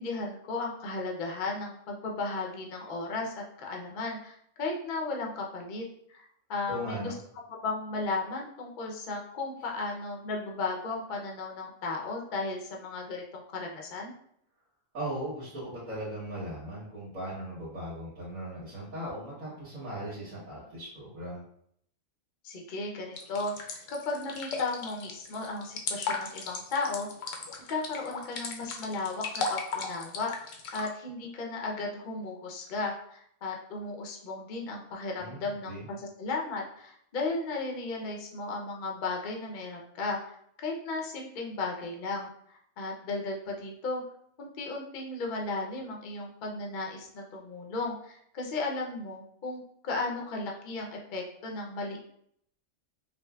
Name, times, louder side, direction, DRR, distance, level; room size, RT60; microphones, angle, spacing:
voice 1, 0.0-5.8 6.1-7.1 7.6-14.1 22.4-27.1 27.7-30.3 30.7-40.2 40.6-44.0 44.4-52.0, left 3 dB, 50° left, 0 dB, 0.6 m, -35 dB
voice 2, 6.7-7.2 14.9-21.4 35.2-35.4 35.7-35.9, right 1 dB, 75° right, -9 dB, 1.7 m, -38 dB
sound 1, 23.2-30.9, left 4 dB, 70° left, 0.9 m, -36 dB
5.1 x 2.1 x 2.3 m, 0.68 s
omnidirectional pair, 1.4 m